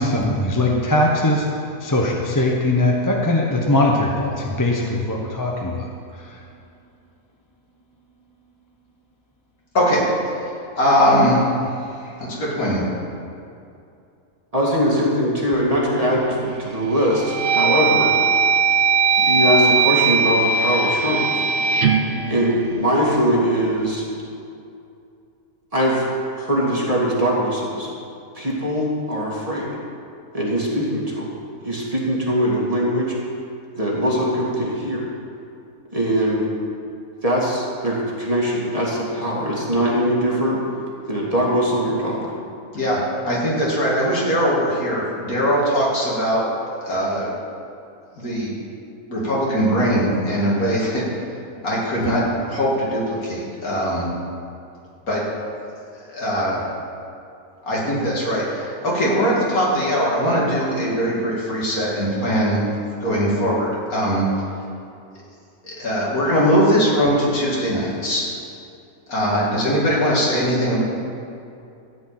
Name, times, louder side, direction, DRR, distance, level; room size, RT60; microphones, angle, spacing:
voice 1, 0.0-1.5 1.8-6.5, left 1 dB, 15° left, -1 dB, 0.8 m, -21 dB
voice 2, 10.8-11.4 12.2-12.9 42.7-43.0 43.3-46.4 46.8-47.3 48.2-48.5 49.1-51.0 51.6-54.1 55.1-55.2 56.0-56.6 57.6-62.6 63.0-64.2 65.6-68.3 69.1-70.8, equal, 70° left, -5 dB, 3.1 m, -20 dB
voice 3, 14.5-18.1 19.2-21.4 22.3-24.0 25.7-26.1 26.3-27.9 28.3-29.7 30.3-31.3 31.6-33.1 33.8-35.0 35.9-36.5 37.2-40.6 41.1-42.3, equal, 25° right, -5 dB, 2.1 m, -21 dB
sound 1, 16.1-16.5 17.0-23.2, right 5 dB, 50° right, 0.6 m, -19 dB
14.0 x 5.1 x 9.1 m, 2.6 s
omnidirectional pair, 1.6 m